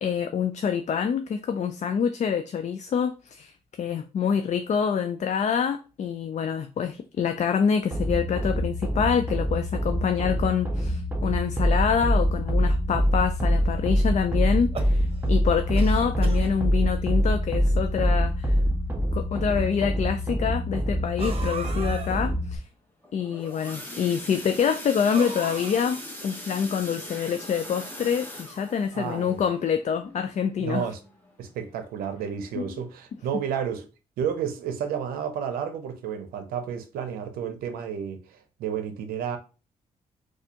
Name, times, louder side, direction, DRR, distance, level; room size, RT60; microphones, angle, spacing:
voice 1, 0.0-18.6 19.1-22.6 23.1-30.9 32.5-32.8, left 7 dB, 50° left, 0.4 m, -26 dB
sound 1, 7.9-22.6, equal, 10° right, 1.0 m, -25 dB
sound 2, 14.5-15.4 15.8-16.5 17.3-17.4 17.7-17.8 18.7-18.8 21.2-22.2 25.1-26.3, right 4 dB, 40° right, 0.8 m, -37 dB
sound 3, 23.0-31.7 32.1-32.4 32.7-32.8 33.3-33.4, left 1 dB, 15° left, 1.1 m, -41 dB
voice 2, 28.9-29.4 30.6-31.0 31.4-33.9 34.2-39.4, right 8 dB, 85° right, 0.6 m, -31 dB
4.1 x 2.3 x 2.8 m
supercardioid pair, 50°, 15 cm